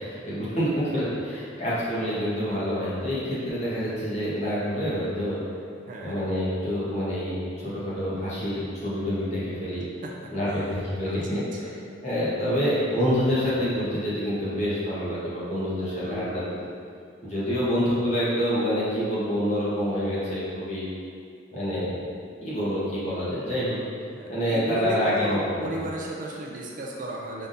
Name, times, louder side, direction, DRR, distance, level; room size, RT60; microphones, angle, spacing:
voice 1, 0.0-5.4 6.0-9.8 10.3-11.7 12.0-16.5 17.2-20.9 21.5-22.0 22.4-23.8 24.3-25.7, equal, 35° left, -9 dB, 1.3 m, -27 dB
voice 2, 11.1-11.7 16.0-16.7 24.1-27.5, right 1 dB, 40° right, -1 dB, 0.4 m, -35 dB
5.5 x 3.5 x 2.6 m, 2.3 s
head